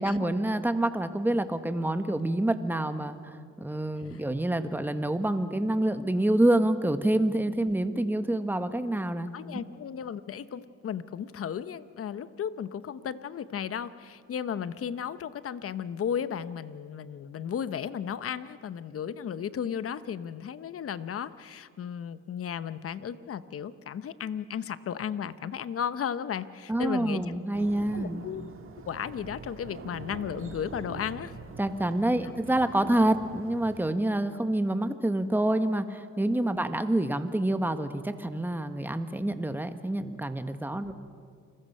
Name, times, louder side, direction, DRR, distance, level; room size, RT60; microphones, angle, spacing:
voice 1, 0.0-9.3 26.7-28.2 31.6-40.9, right 1 dB, 5° right, 9 dB, 1.2 m, -27 dB
voice 2, 9.3-27.2 27.9-28.4 28.9-31.3 32.2-32.3, left 8 dB, 50° left, 14 dB, 0.9 m, -34 dB
sound 1, 27.5-33.9, right 4 dB, 45° right, 1.7 m, -44 dB
29.5 x 21.0 x 5.5 m, 2.2 s
cardioid pair, 100°, 30 cm